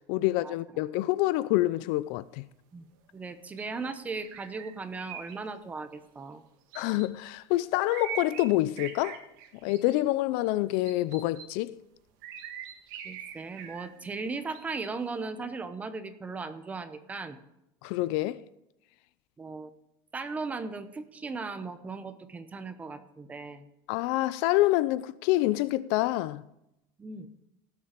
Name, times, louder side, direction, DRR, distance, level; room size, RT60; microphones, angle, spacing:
voice 1, 0.1-2.4 6.7-9.2 9.6-11.8 17.8-18.4 23.9-26.4, left 17 dB, 60° left, 0.5 m, -27 dB
voice 2, 3.1-6.4 13.0-17.4 19.4-19.7 20.1-23.7 27.0-27.3, right 4 dB, 15° right, 0.7 m, -37 dB
sound 1, 3.6-5.4 6.7-7.1 7.9-8.5 8.8-10.1 10.9-11.4 12.2-13.9 14.5-14.9, right 8 dB, 75° right, 1.8 m, -42 dB
17.0 x 7.3 x 5.2 m
cardioid pair, 170°, 11 cm